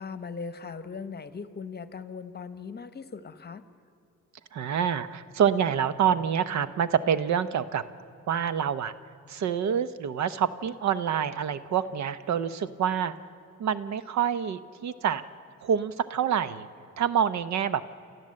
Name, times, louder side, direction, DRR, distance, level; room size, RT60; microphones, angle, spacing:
voice 1, 0.0-3.6, left 5 dB, 35° left, 13 dB, 1.0 m, -39 dB
voice 2, 4.5-7.8 8.3-8.9 9.3-13.1 13.6-15.2 15.6-16.7 17.0-17.8, right 8 dB, 65° right, 14 dB, 0.9 m, -27 dB
29.0 x 13.5 x 7.6 m, 2.5 s
cardioid pair, 90°, 30 cm